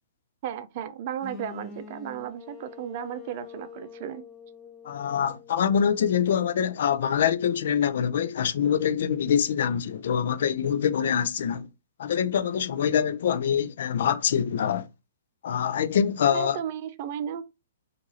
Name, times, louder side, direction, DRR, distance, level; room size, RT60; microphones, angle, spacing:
voice 1, 0.4-4.2 16.3-17.4, right 9 dB, 45° right, 0.5 m, -34 dB
sound 1, 1.2-7.1, left 6 dB, 15° left, 0.8 m, -46 dB
voice 2, 4.8-11.7 12.0-14.9 15.4-16.6, left 8 dB, 60° left, 0.4 m, -25 dB
4.6 x 2.5 x 2.7 m
hypercardioid pair, 125°, 0 cm